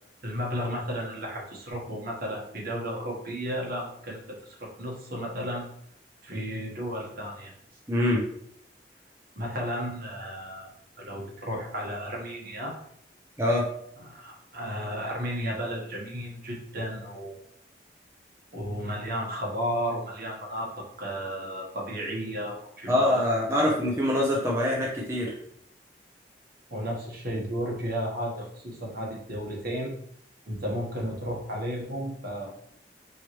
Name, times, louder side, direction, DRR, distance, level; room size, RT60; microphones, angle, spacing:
voice 1, 0.2-5.6 6.2-7.5 9.3-10.7 11.0-12.7 14.0-17.4 18.5-23.2 23.5-23.6 26.7-29.9 30.5-32.5, equal, 55° right, -2 dB, 1.3 m, -33 dB
voice 2, 7.9-8.2 13.4-13.7 22.9-25.3, left 1 dB, 15° right, -4 dB, 0.6 m, -24 dB
4.7 x 3.1 x 3.0 m, 0.68 s
head